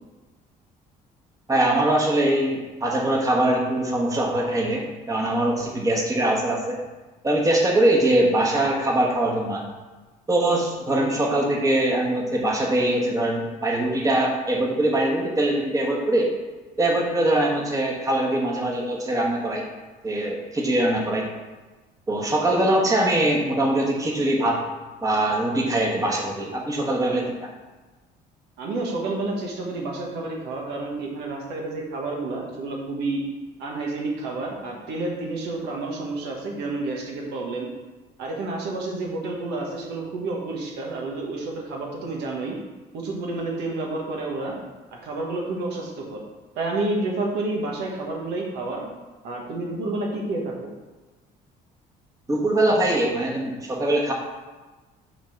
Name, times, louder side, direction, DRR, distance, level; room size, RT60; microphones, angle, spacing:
voice 1, 1.5-6.8 7.2-9.6 10.3-16.3 16.8-19.6 20.0-21.3 22.1-24.6 25.0-27.5 52.3-54.1, right 1 dB, 20° right, -1 dB, 1.3 m, -22 dB
voice 2, 28.6-33.2 33.6-37.7 38.2-42.6 42.9-44.6 44.9-46.2 46.6-48.9 49.2-50.7, right 2 dB, 85° right, -1 dB, 1.4 m, -29 dB
5.7 x 3.9 x 5.8 m, 1.2 s
cardioid pair, 110°, 17 cm